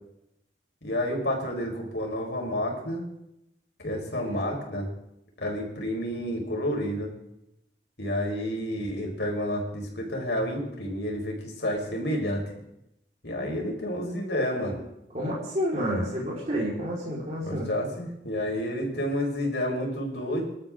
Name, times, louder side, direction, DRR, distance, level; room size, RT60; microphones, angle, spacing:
voice 1, 0.8-3.0 3.8-4.9 5.4-7.1 8.0-12.4 13.2-14.8 17.4-20.4, equal, 70° left, 0 dB, 5.0 m, -30 dB
voice 2, 15.1-17.7, equal, 40° right, -6 dB, 4.8 m, -29 dB
26.0 x 12.5 x 3.8 m, 0.83 s
head